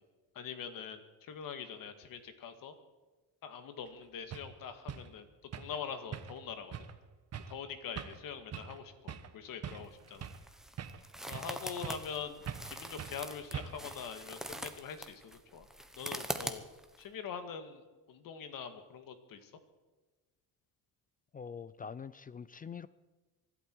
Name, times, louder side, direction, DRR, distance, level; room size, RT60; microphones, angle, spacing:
voice 1, 0.4-2.7 3.4-5.3 5.5-6.7 7.5-10.3 11.3-12.4 12.7-15.7 16.0-16.7 17.0-17.8 18.1-19.5, left 7 dB, 65° left, 2.0 m, -43 dB
sound 1, 3.9-4.0 4.3-4.5 4.9-5.1 5.5-5.8 6.1-6.4 6.7-6.9 7.3-7.6 8.0-8.2 8.5-8.8 9.1-9.3 9.6-10.5 10.8-11.6 11.8-12.1 12.5-12.7 13.0-13.2 13.5-13.9, right 8 dB, 45° right, 1.2 m, -43 dB
sound 2, 9.8-17.0, right 1 dB, ahead, 1.1 m, -43 dB
voice 2, 21.3-22.9, left 6 dB, 25° left, 0.4 m, -44 dB
24.5 x 12.0 x 4.7 m
cardioid pair, 120°, 36 cm